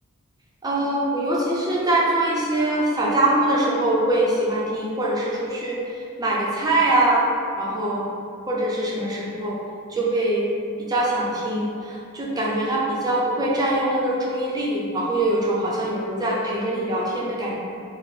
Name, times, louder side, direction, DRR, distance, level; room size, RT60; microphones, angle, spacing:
voice 1, 0.6-5.8 6.2-7.3 7.6-8.0 8.5-9.6 9.9-10.5 10.8-17.6, right 1 dB, 20° right, -4 dB, 0.5 m, -23 dB
4.0 x 2.0 x 3.3 m, 2.3 s
head